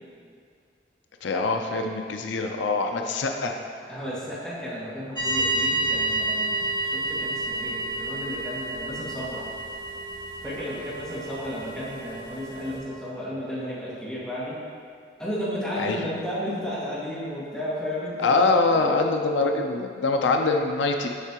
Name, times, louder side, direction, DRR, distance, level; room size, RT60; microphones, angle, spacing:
voice 1, 1.2-3.6 15.8-16.0 18.2-21.1, left 3 dB, 90° left, 4 dB, 0.5 m, -24 dB
voice 2, 3.9-9.5 10.4-14.6 15.2-18.8 19.3-19.5, equal, 5° left, -11 dB, 1.8 m, -33 dB
sound 1, 5.1-12.8, right 2 dB, 25° left, 1.2 m, -30 dB
8.0 x 5.8 x 2.9 m, 2.2 s
head